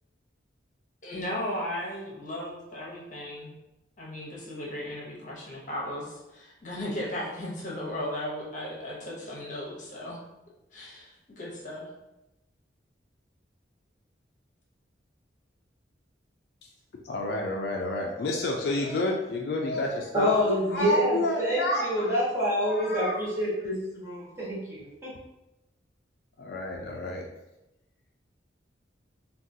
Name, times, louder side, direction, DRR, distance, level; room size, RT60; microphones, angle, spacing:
voice 1, 1.0-3.5 4.0-10.2 10.7-11.9, left 1 dB, 40° left, -4 dB, 0.8 m, -36 dB
voice 2, 17.0-20.3 20.7-22.2 22.6-23.3 26.4-27.2, left 2 dB, 55° left, 0 dB, 0.3 m, -30 dB
voice 3, 20.1-25.1, equal, 15° right, -9 dB, 1.2 m, -27 dB
3.6 x 2.3 x 2.6 m, 0.95 s
head